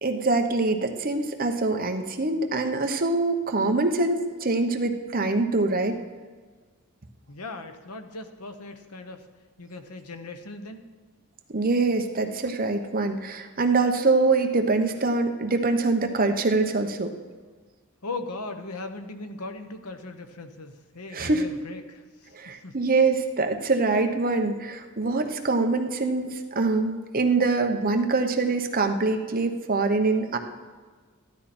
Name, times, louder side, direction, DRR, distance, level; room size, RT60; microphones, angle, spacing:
voice 1, 0.0-6.0 11.5-17.1 21.1-21.5 22.3-30.4, right 3 dB, 40° right, 5 dB, 1.0 m, -24 dB
voice 2, 7.3-9.3 9.6-10.9 18.0-22.8, left 3 dB, 85° left, 7 dB, 1.1 m, -38 dB
14.5 x 12.0 x 4.4 m, 1.4 s
head